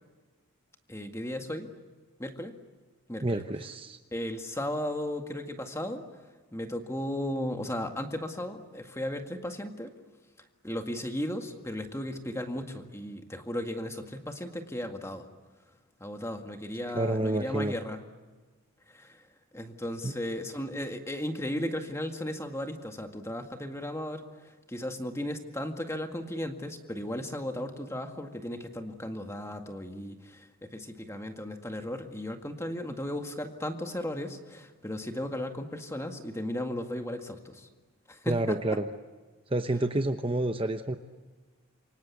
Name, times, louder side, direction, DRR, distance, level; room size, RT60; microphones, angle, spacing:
voice 1, 0.9-1.7 2.2-2.5 3.1-3.4 4.1-6.0 6.5-9.9 10.6-15.2 16.0-18.0 18.9-19.2 19.5-24.2 24.7-37.7 38.1-38.6, left 1 dB, 15° left, 5 dB, 1.9 m, -35 dB
voice 2, 3.2-4.0 16.9-17.7 20.0-20.1 38.2-38.9 39.5-41.0, right 2 dB, 25° right, 7 dB, 0.9 m, -29 dB
28.0 x 24.5 x 8.3 m, 1.3 s
head